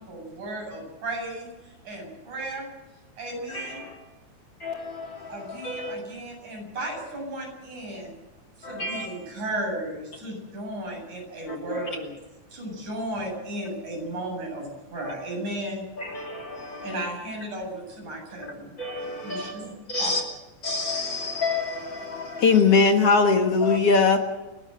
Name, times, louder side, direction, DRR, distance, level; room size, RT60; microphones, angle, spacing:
voice 1, 0.0-2.7 3.2-3.8 5.3-8.1 8.6-12.1 12.5-15.8 16.8-18.7 19.2-19.7 20.0-20.1, right 1 dB, 75° right, 9.5 m, -35 dB
voice 2, 3.5-3.9 4.6-6.0 8.6-9.1 11.5-11.9 16.0-17.0 18.8-19.5 19.9-20.2 20.6-22.6 23.6-23.8, left 3 dB, 40° left, 3.3 m, -32 dB
voice 3, 22.4-24.2, left 4 dB, 55° left, 2.3 m, -18 dB
29.5 x 12.5 x 7.9 m
omnidirectional pair, 3.5 m